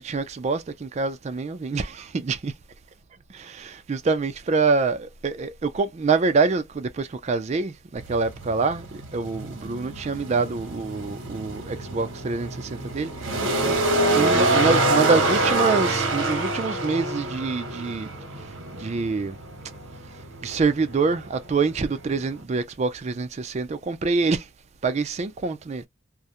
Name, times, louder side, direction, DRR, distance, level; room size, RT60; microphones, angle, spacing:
voice 1, 0.0-2.5 3.3-13.3 14.1-18.2 18.7-19.4 20.4-24.5 24.8-25.8, right 4 dB, 35° right, 0.3 m, -25 dB
sound 1, 8.0-22.4, right 2 dB, 75° right, 0.9 m, -26 dB
2.4 x 2.0 x 2.8 m
head